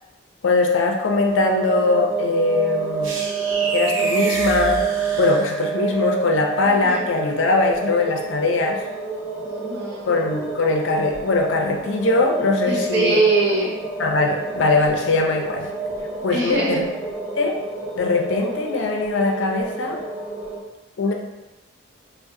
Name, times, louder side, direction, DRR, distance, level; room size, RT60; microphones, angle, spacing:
voice 1, 0.4-3.1 3.7-4.8 5.2-8.8 10.1-13.2 14.0-15.7 16.2-16.9 17.4-17.6 18.0-20.0 21.0-21.1, left 3 dB, 70° left, 2 dB, 0.5 m, -21 dB
sound 1, 1.3-20.6, right 5 dB, 15° right, 1.5 m, -28 dB
sound 2, 3.0-5.9, right 2 dB, 75° right, 0.6 m, -30 dB
voice 2, 9.4-10.2 12.6-13.7 16.3-16.8, right 3 dB, 55° right, -5 dB, 1.0 m, -22 dB
4.5 x 2.1 x 2.6 m, 1.0 s
head